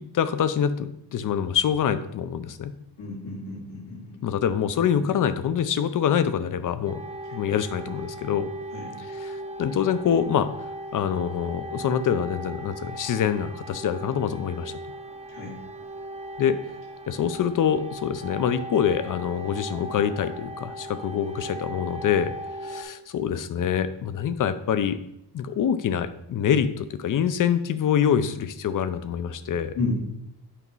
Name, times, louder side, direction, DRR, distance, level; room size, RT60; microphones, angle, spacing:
voice 1, 0.0-2.7 4.2-7.0 7.3-8.5 9.0-10.5 10.9-14.8 16.4-16.6 17.1-22.3 22.6-25.0 25.3-29.7, left 8 dB, 50° left, 12 dB, 0.5 m, -25 dB
voice 2, 3.0-4.1 5.0-5.1 8.7-8.9 15.3-15.5 29.8-29.9, left 3 dB, 85° left, -4 dB, 2.6 m, -31 dB
sound 1, 6.9-22.8, right 1 dB, 15° right, 0.6 m, -38 dB
8.3 x 3.0 x 5.4 m, 0.78 s
wide cardioid pair, 145°, 43 cm